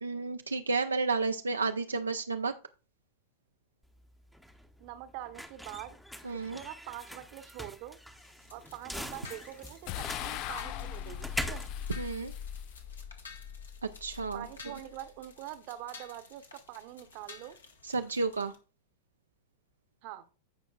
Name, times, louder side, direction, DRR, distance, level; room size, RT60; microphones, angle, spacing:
voice 1, 0.0-2.5 6.2-6.6 12.0-12.3 13.8-14.5 17.8-18.5, right 4 dB, 75° right, 0.4 m, -31 dB
sound 1, 3.8-12.9, equal, ahead, 0.7 m, -43 dB
voice 2, 4.8-6.0 6.3-8.0 8.5-11.7 14.3-17.6 20.0-20.2, right 13 dB, 45° right, 0.8 m, -44 dB
sound 2, 8.2-18.6, left 4 dB, 70° left, 1.4 m, -53 dB
sound 3, 9.9-15.2, left 10 dB, 40° left, 0.3 m, -40 dB
15.5 x 5.2 x 2.3 m
figure-of-eight pair, 90°, 0 cm